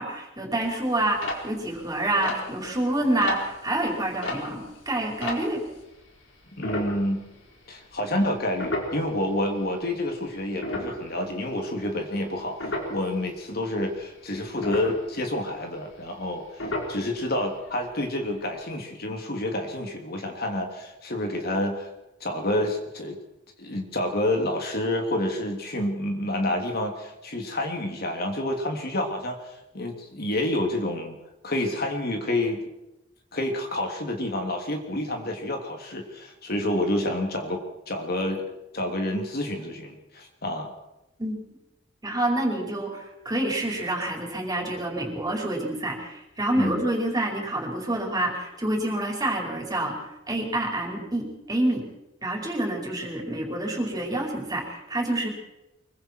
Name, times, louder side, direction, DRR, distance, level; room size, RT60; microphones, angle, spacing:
voice 1, 0.0-5.6 41.2-41.3 42.0-51.9 52.2-55.3, right 1 dB, 20° right, 0 dB, 5.1 m, -27 dB
sound 1, 0.6-5.8 6.6-7.6 7.9-8.1 8.5-9.8 10.3-13.2 13.5-14.0 14.3-16.3 16.6-17.4 17.7-17.8 18.0-18.3 18.6-18.7, left 1 dB, 75° left, 4.5 m, -33 dB
voice 2, 6.6-7.2 7.7-21.9 22.2-23.2 23.6-29.4 29.7-31.2 31.4-32.6 33.3-38.4 38.7-40.7 46.5-46.8, left 1 dB, 55° left, 3 dB, 3.1 m, -28 dB
25.0 x 23.0 x 4.7 m, 0.93 s
head